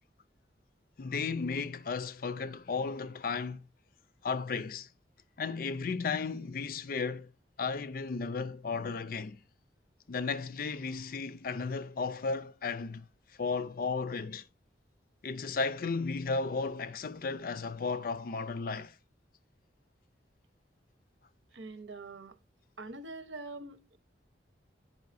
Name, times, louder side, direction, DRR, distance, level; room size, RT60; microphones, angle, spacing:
voice 1, 1.0-3.6 4.2-4.9 5.4-7.3 7.6-9.4 10.1-13.1 13.4-14.5 15.2-18.9, left 4 dB, 50° left, 0.4 m, -34 dB
voice 2, 21.5-22.4 22.8-24.0, right 3 dB, 85° right, 0.9 m, -44 dB
9.5 x 5.4 x 2.6 m
head